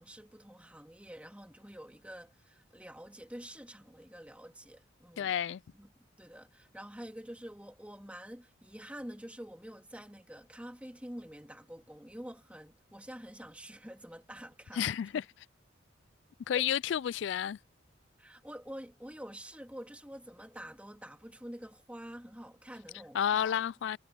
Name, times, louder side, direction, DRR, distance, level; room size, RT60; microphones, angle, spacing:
voice 1, 0.0-5.3 5.7-5.9 6.2-14.9 15.1-15.2 16.5-16.6 18.2-23.6, equal, 5° right, 2.7 m, -47 dB
voice 2, 5.2-5.6 14.8-15.2 16.5-17.6 23.1-24.0, left 9 dB, 60° left, 0.3 m, -31 dB
head